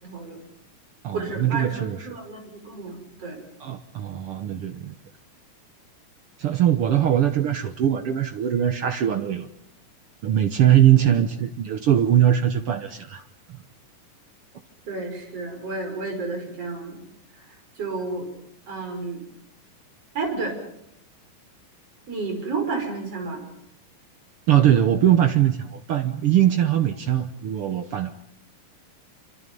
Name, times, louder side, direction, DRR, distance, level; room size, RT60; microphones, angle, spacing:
voice 1, 0.0-0.4 1.1-3.4 14.9-17.0 17.8-18.3 18.7-19.3 20.1-20.6 22.1-23.4, right 3 dB, 45° right, 3 dB, 6.7 m, -31 dB
voice 2, 1.0-2.2 3.6-4.9 6.4-9.5 10.2-13.3 24.5-28.1, right 11 dB, 75° right, 8 dB, 1.3 m, -21 dB
27.0 x 26.0 x 5.4 m, 0.73 s
omnidirectional pair, 4.0 m